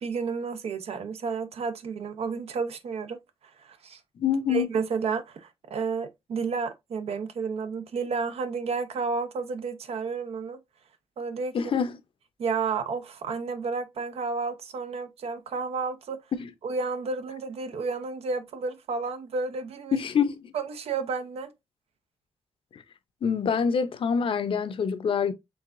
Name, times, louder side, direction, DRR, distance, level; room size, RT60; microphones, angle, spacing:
voice 1, 0.0-3.2 3.6-4.0 4.5-10.6 11.2-11.6 12.4-16.2 16.6-20.0 20.5-21.5, right 4 dB, 85° right, 0.7 m, -31 dB
voice 2, 4.2-4.7 11.5-12.0 16.3-16.5 19.9-20.5 22.7-22.8 23.2-25.3, left 7 dB, 60° left, 0.5 m, -26 dB
4.7 x 3.3 x 2.5 m
wide cardioid pair, 135°, 10 cm